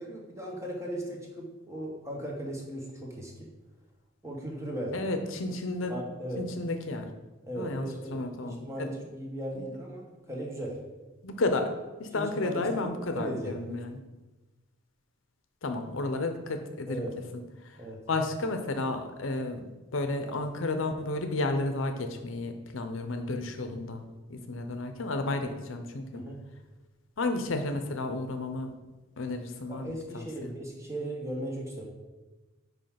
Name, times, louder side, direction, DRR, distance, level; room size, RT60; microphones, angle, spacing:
voice 1, 0.0-3.5 4.2-5.1 5.9-6.4 7.4-10.8 12.1-12.9 13.2-13.5 16.9-17.1 17.7-18.0 23.7-23.8 26.1-26.4 29.7-31.8, right 1 dB, 15° right, -1 dB, 1.2 m, -37 dB
voice 2, 4.9-6.0 6.4-7.1 7.6-8.9 11.2-11.7 12.0-14.0 15.6-17.1 17.3-17.8 18.1-19.6 19.9-24.0 24.3-26.2 27.2-28.7 29.2-30.5, left 2 dB, 70° left, 6 dB, 0.7 m, -32 dB
5.4 x 4.8 x 5.7 m, 1.2 s
head